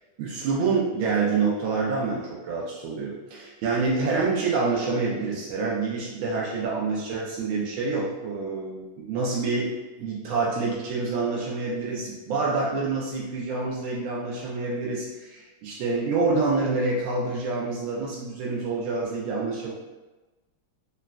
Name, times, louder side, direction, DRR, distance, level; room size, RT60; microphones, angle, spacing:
voice 1, 0.2-9.7 10.0-19.7, right 4 dB, 80° right, -4 dB, 1.3 m, -27 dB
4.0 x 2.2 x 2.2 m, 1.2 s
omnidirectional pair, 2.2 m